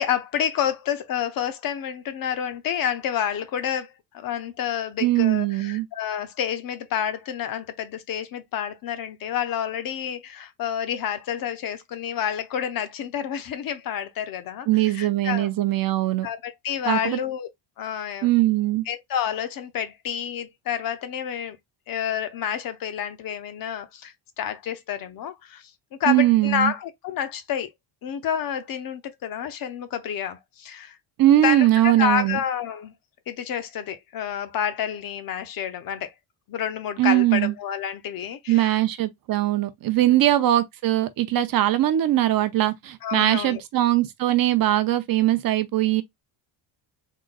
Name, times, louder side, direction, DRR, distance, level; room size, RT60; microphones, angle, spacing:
voice 1, 0.0-15.5 16.2-17.5 17.8-18.3 18.9-21.6 21.9-25.7 26.0-27.7 28.0-31.0 31.4-32.9 33.3-36.1 36.5-38.8 40.0-40.2 43.0-43.6, left 9 dB, 45° left, 0.7 m, -29 dB
voice 2, 5.0-5.9 14.7-16.3 16.9-17.2 18.2-18.8 26.1-26.7 31.2-32.4 37.0-37.5 38.5-46.0, right 14 dB, 50° right, 0.6 m, -21 dB
3.8 x 2.1 x 3.8 m
cardioid pair, 150°, 48 cm